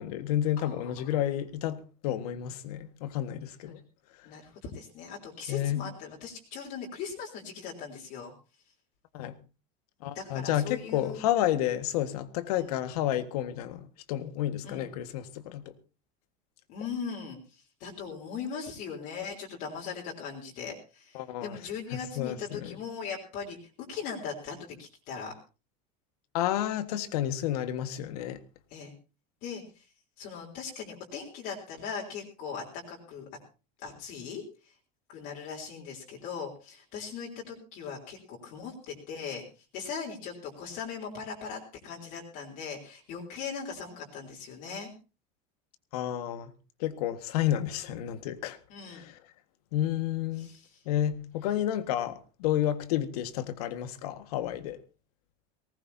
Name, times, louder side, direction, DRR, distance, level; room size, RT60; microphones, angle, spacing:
voice 1, 0.0-3.8 5.5-5.8 9.1-9.4 10.0-15.7 21.1-21.6 22.2-22.8 26.3-28.4 45.9-46.5 46.8-48.6 48.9-49.2 49.7-50.5 50.9-54.8, left 12 dB, 80° left, 1.7 m, -31 dB
voice 2, 0.6-1.1 3.7-3.8 4.2-8.3 10.1-11.2 12.5-12.7 14.6-14.9 16.7-25.3 28.7-28.9 29.4-29.8 30.2-33.3 33.8-34.4 35.1-39.4 39.7-44.9 48.7-49.0 50.4-50.8, left 6 dB, 45° left, 3.7 m, -39 dB
19.0 x 19.0 x 2.8 m
cardioid pair, 170°, 19 cm